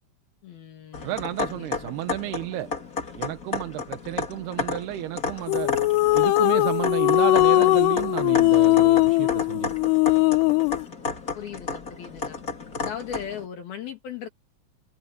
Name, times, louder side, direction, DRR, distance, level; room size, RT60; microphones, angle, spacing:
voice 1, 0.4-2.0 11.3-12.4 12.8-14.3, left 8 dB, 65° left, 3.9 m, -38 dB
sound 1, 0.9-13.5, left 4 dB, 25° left, 2.8 m, -33 dB
voice 2, 1.0-2.7 3.2-5.7 6.1-9.7, right 14 dB, 75° right, 3.0 m, -31 dB
sound 2, 5.5-10.8, left 21 dB, 85° left, 2.8 m, -20 dB
omnidirectional pair, 4.7 m